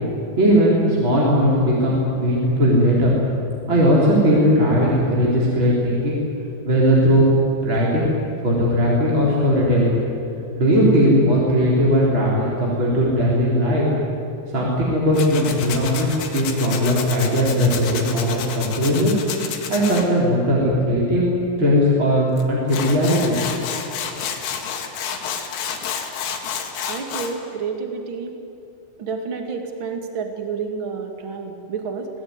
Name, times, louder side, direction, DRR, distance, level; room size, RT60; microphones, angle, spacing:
voice 1, 0.4-3.1 3.7-6.2 6.6-7.3 7.6-8.1 8.4-10.0 10.6-13.9 14.5-19.2 19.7-21.3 21.6-23.3, equal, 25° right, -5 dB, 4.1 m, -18 dB
Tools, 15.1-20.0 22.4-22.5 22.7-27.3, left 7 dB, 80° left, 4.5 m, -30 dB
voice 2, 26.9-28.4 29.0-32.1, right 5 dB, 40° right, 4 dB, 1.8 m, -29 dB
26.0 x 18.5 x 9.7 m, 2.7 s
omnidirectional pair, 5.7 m